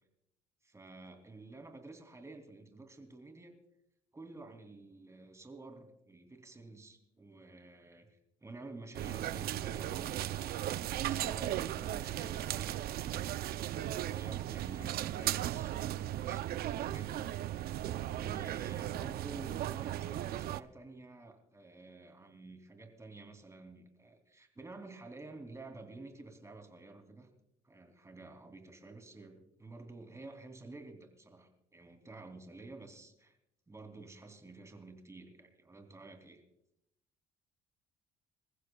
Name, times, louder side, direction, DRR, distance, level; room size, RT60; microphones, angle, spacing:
voice 1, 0.6-3.5 4.1-13.3 14.0-17.3 18.2-27.3 27.6-33.4 33.7-36.4, right 3 dB, 15° right, 5 dB, 3.1 m, -51 dB
sound 1, 8.9-20.6, right 13 dB, 65° right, 0.6 m, -36 dB
26.5 x 15.0 x 2.4 m, 0.79 s
cardioid pair, 110°, 17 cm